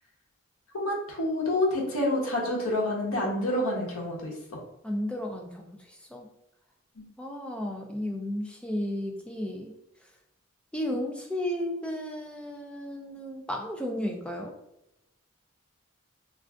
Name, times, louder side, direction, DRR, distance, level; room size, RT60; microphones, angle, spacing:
voice 1, 0.7-4.3 7.0-7.1, left 1 dB, 85° left, -2 dB, 0.9 m, -28 dB
voice 2, 4.8-5.7 6.1-6.3 7.2-9.7 10.7-14.5, left 1 dB, 5° left, 1 dB, 0.3 m, -33 dB
2.5 x 2.3 x 3.4 m, 0.86 s
head